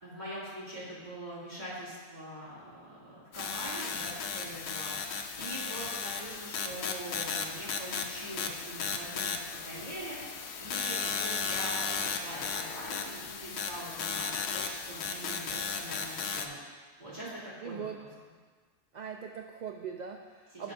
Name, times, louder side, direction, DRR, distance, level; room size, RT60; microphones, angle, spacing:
voice 1, 0.0-4.9 5.4-9.4 9.6-10.2 10.6-16.6 17.0-17.8 20.5-20.7, right 1 dB, 35° right, -10 dB, 2.5 m, -43 dB
sound 1, 3.3-16.5, left 5 dB, 75° left, 1.0 m, -35 dB
voice 2, 17.6-18.0 18.9-20.7, right 7 dB, 55° right, 3 dB, 0.5 m, -41 dB
18.0 x 6.0 x 2.6 m, 1.5 s
omnidirectional pair, 1.3 m